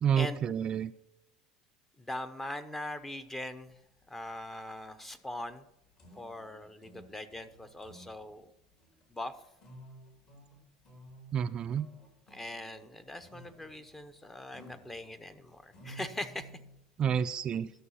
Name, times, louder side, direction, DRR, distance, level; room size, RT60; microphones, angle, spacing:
voice 1, 0.0-0.9 11.3-11.9 17.0-17.7, right 8 dB, 35° right, 9 dB, 0.4 m, -29 dB
voice 2, 2.0-3.8 4.1-5.6 6.2-8.5 9.1-9.3 12.3-16.5, left 1 dB, 10° left, 11 dB, 0.7 m, -41 dB
sound 1, 3.7-17.0, right 1 dB, 45° left, 3.4 m, -55 dB
12.5 x 6.3 x 5.6 m, 0.83 s
supercardioid pair, 120°, 2 cm